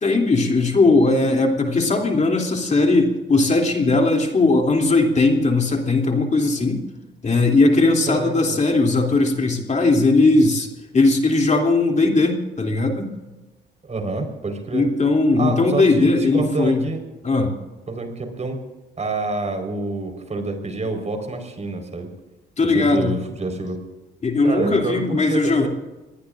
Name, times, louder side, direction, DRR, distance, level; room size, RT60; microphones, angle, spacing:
voice 1, 0.0-6.8 7.2-10.7 10.9-13.1 14.7-16.8 17.2-17.5 22.6-23.1 24.2-25.7, left 3 dB, 35° left, 2 dB, 2.9 m, -18 dB
voice 2, 13.8-14.9 15.4-17.0 17.9-18.6 19.0-22.1 22.6-23.8 24.4-25.7, right 3 dB, 35° right, 5 dB, 4.5 m, -27 dB
25.0 x 19.5 x 2.6 m, 1.1 s
cardioid pair, 90°, 20 cm